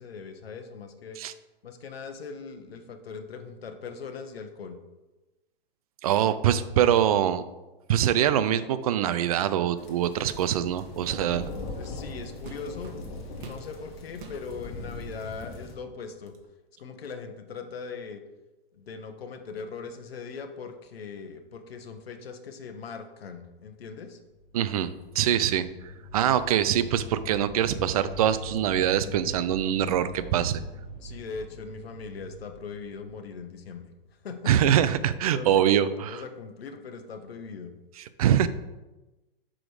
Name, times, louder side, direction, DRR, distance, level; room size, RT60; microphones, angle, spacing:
voice 1, 0.0-1.2 1.6-4.8 11.8-13.0 13.4-16.3 16.8-18.2 18.7-24.2 31.0-33.9 34.2-34.8 35.3-37.7, left 5 dB, 85° left, 6 dB, 1.1 m, -40 dB
voice 2, 6.0-7.4 7.9-11.5 24.5-25.7 26.1-30.6 34.5-36.2 38.2-38.5, right 10 dB, 40° right, 13 dB, 0.4 m, -24 dB
sound 1, 9.8-15.7, left 2 dB, 55° left, 2.1 m, -40 dB
sound 2, 11.7-11.9 12.4-13.7 14.1-14.4 15.1-15.2 15.7-16.5, right 5 dB, 60° right, 1.2 m, -46 dB
sound 3, 24.2-34.0, left 1 dB, 25° left, 2.1 m, -43 dB
6.1 x 5.0 x 4.8 m, 1.1 s
hypercardioid pair, 150°, 30 cm